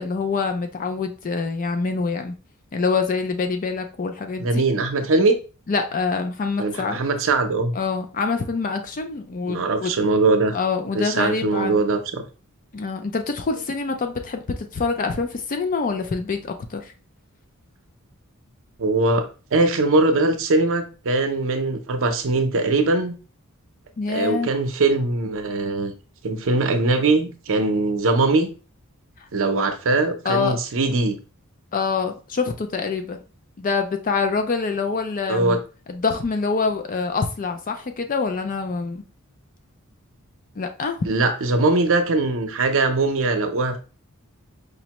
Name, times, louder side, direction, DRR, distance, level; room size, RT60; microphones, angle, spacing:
voice 1, 0.0-2.3 2.7-4.6 5.7-7.0 7.7-9.9 10.5-11.8 12.7-16.9 24.0-24.5 30.2-30.6 31.7-33.2 33.6-35.6 35.9-39.0 40.6-41.0, left 4 dB, 40° left, 6 dB, 0.4 m, -25 dB
voice 2, 4.4-5.4 6.6-7.7 9.5-10.6 10.9-12.2 18.8-23.1 24.1-25.9 26.2-28.5 29.3-31.2 35.3-35.6 41.0-43.8, right 3 dB, 60° right, 7 dB, 0.6 m, -21 dB
5.1 x 2.1 x 2.9 m, 0.35 s
head